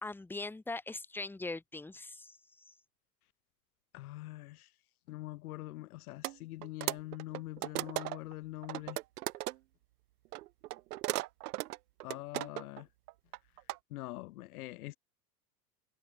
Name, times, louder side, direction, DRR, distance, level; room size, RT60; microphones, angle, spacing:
voice 1, 0.0-2.4, left 3 dB, 5° left, 0.9 m, -41 dB
voice 2, 3.9-4.7 5.1-9.0 12.0-12.9 13.9-15.0, left 17 dB, 65° left, 0.8 m, -44 dB
sound 1, 6.2-6.4 6.6-8.3 8.6-9.6 10.3-12.8 13.1-13.8, right 17 dB, 75° right, 0.6 m, -37 dB
hypercardioid pair, 95°, 47 cm